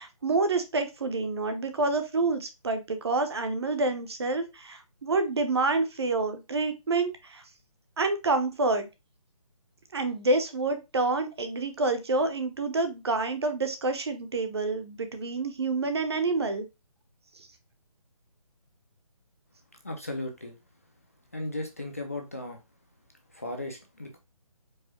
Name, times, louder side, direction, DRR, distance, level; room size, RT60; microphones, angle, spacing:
voice 1, 0.0-7.4 8.0-8.9 9.9-16.6, right 3 dB, 45° right, 9 dB, 0.7 m, -28 dB
voice 2, 19.8-20.5 21.3-22.6 23.3-24.2, left 1 dB, 25° left, 3 dB, 0.4 m, -36 dB
4.6 x 2.1 x 2.9 m, 0.24 s
hypercardioid pair, 170°, 19 cm